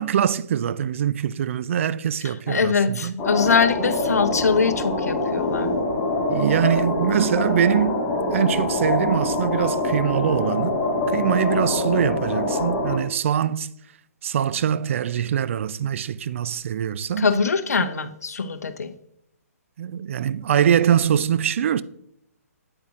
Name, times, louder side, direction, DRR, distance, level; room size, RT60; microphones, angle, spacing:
voice 1, 0.0-3.1 3.8-3.9 6.3-10.8 11.1-13.7 14.2-17.3 19.8-21.8, right 9 dB, 55° right, 0.4 m, -23 dB
voice 2, 2.2-5.7 17.2-18.9, left 5 dB, 75° left, 0.7 m, -22 dB
sound 1, 3.2-13.0, left 2 dB, 20° left, 1.6 m, -24 dB
8.8 x 8.1 x 2.5 m
hypercardioid pair, 135°, 8 cm